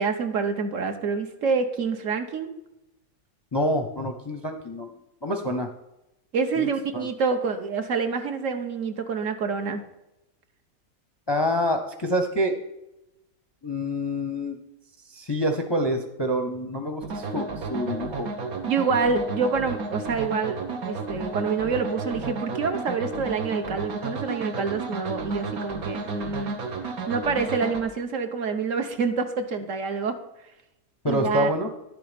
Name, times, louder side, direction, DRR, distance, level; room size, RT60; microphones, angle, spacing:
voice 1, 0.0-2.5 6.3-9.8 18.7-26.5 27.1-30.2 31.1-31.5, right 5 dB, 65° right, 6 dB, 1.3 m, -27 dB
voice 2, 3.5-4.9 5.2-5.7 6.6-7.1 11.3-12.5 13.6-14.6 15.1-18.3 31.0-31.7, equal, 30° left, 5 dB, 0.5 m, -27 dB
sound 1, 17.0-27.8, right 3 dB, 85° right, 1.6 m, -33 dB
11.0 x 6.8 x 5.1 m, 0.92 s
omnidirectional pair, 1.5 m